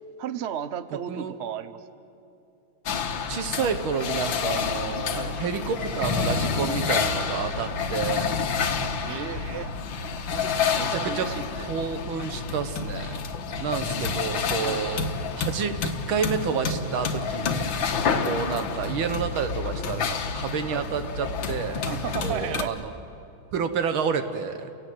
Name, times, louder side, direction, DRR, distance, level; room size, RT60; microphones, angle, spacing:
voice 1, 0.2-1.8 5.1-5.3 9.0-9.7 10.1-11.7 14.6-14.8 18.0-18.3 20.7-20.9 21.8-22.7, right 9 dB, 65° right, 13 dB, 0.6 m, -34 dB
sound 1, 2.9-22.6, left 5 dB, 70° left, 1.9 m, -29 dB
voice 2, 3.3-8.3 10.7-11.3 11.7-15.0 15.4-15.7 16.1-17.8 18.3-21.8 22.2-22.9 23.5-24.7, right 6 dB, 80° right, 9 dB, 2.0 m, -29 dB
29.5 x 17.5 x 7.8 m, 2.8 s
omnidirectional pair, 2.2 m